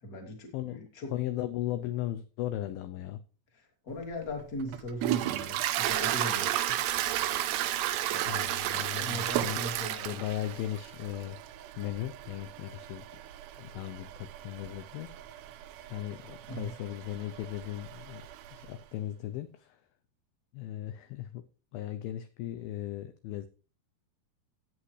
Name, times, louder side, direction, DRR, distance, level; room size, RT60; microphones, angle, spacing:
voice 1, 0.0-1.1 3.5-6.8 8.1-8.4 9.0-10.1 16.5-16.8, left 1 dB, 25° left, 2 dB, 2.1 m, -39 dB
voice 2, 0.5-3.2 8.3-9.6 10.0-11.4 11.8-13.0 13.6-15.1 15.9-18.2 18.5-19.7 20.5-21.4 21.7-23.5, left 13 dB, 80° left, 10 dB, 2.2 m, -37 dB
Toilet flush, 4.0-18.7, right 13 dB, 90° right, 3.0 m, -34 dB
16.0 x 8.4 x 3.2 m, 0.36 s
omnidirectional pair, 4.8 m